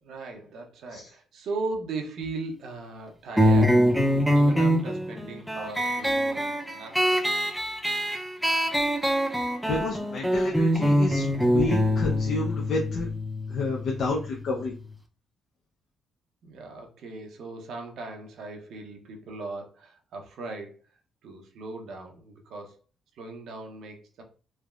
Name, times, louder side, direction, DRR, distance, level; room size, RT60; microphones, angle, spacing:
voice 1, 0.0-3.9 4.3-7.3 16.4-20.8 21.2-22.8 23.1-24.2, right 3 dB, 75° right, 2 dB, 0.7 m, -38 dB
sound 1, 3.4-14.5, equal, ahead, 0.5 m, -24 dB
voice 2, 9.7-13.1 13.5-14.7, left 3 dB, 65° left, -1 dB, 0.5 m, -30 dB
3.3 x 2.1 x 2.3 m, 0.36 s
cardioid pair, 90°, 0 cm